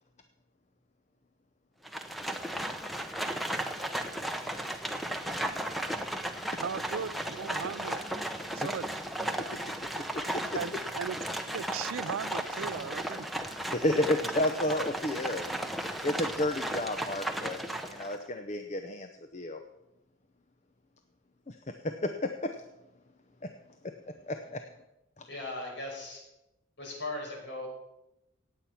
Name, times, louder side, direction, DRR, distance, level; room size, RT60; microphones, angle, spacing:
Livestock farm animals working animals, 1.8-18.2, right 1 dB, ahead, 0.8 m, -35 dB
voice 1, 6.6-8.0 8.5-9.0 10.5-11.2 11.5-13.3, right 6 dB, 80° right, 0.4 m, -37 dB
voice 2, 13.7-15.5 16.0-17.6 17.9-19.6 21.5-22.5 23.8-23.9 24.3-24.6 25.2-25.3, left 1 dB, 35° left, 0.7 m, -31 dB
voice 3, 25.3-26.2 26.8-27.7, left 2 dB, 55° left, 5.2 m, -38 dB
18.0 x 8.4 x 5.9 m
head